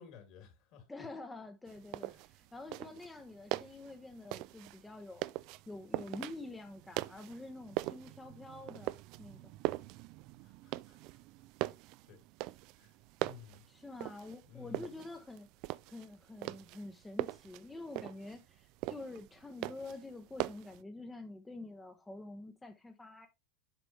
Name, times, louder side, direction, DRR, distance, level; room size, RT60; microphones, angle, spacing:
voice 1, 0.0-0.9 2.0-2.2 10.4-11.2 12.1-12.2 12.8-13.6 14.4-15.1, left 7 dB, 60° left, 3.2 m, -55 dB
voice 2, 0.9-5.2 5.7-8.9 9.2-9.4 13.7-15.5 15.8-23.3, left 2 dB, 10° left, 0.8 m, -47 dB
sound 1, 1.7-20.8, right 18 dB, 60° right, 0.3 m, -42 dB
7.7 x 5.1 x 3.2 m
supercardioid pair, 110°, 0 cm